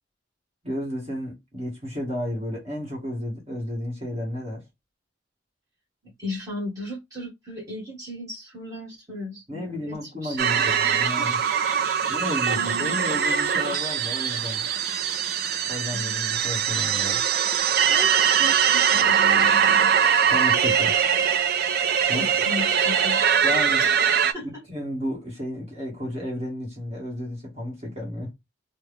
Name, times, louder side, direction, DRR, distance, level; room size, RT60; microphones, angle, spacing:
voice 1, 0.6-4.6 9.5-11.4 12.1-14.7 15.6-17.2 20.3-21.0 22.1-22.3 23.4-23.8 24.4-28.3, left 1 dB, 35° right, 1.5 m, -32 dB
voice 2, 6.2-11.3 11.6-12.1 12.5-13.0 15.9-16.3 17.6-19.7 22.1-23.2 23.8-24.6, left 1 dB, 20° right, 1.5 m, -36 dB
sound 1, 10.4-24.3, right 8 dB, 55° right, 0.4 m, -22 dB
sound 2, 10.8-15.4 16.7-17.6, right 3 dB, 80° right, 0.9 m, -41 dB
3.4 x 2.2 x 3.3 m
head